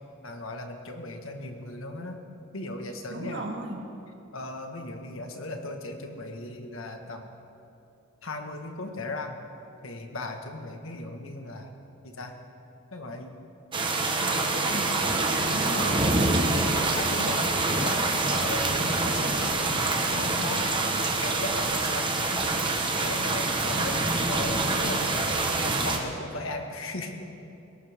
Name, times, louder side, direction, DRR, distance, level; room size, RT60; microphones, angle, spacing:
voice 1, 0.2-2.2 2.5-3.4 4.3-7.3 8.2-9.4 9.8-11.7 12.0-12.3 12.9-13.4 15.6-16.0 16.4-18.0 18.3-22.5 23.0-27.3, left 2 dB, 70° left, 4 dB, 1.6 m, -37 dB
voice 2, 3.1-3.9 14.2-16.1 17.2-17.5 19.0-19.4, right 2 dB, 55° right, 2 dB, 1.8 m, -36 dB
sound 1, 13.7-26.0, right 3 dB, 25° right, 1.2 m, -26 dB
21.0 x 18.0 x 3.6 m, 2.7 s
head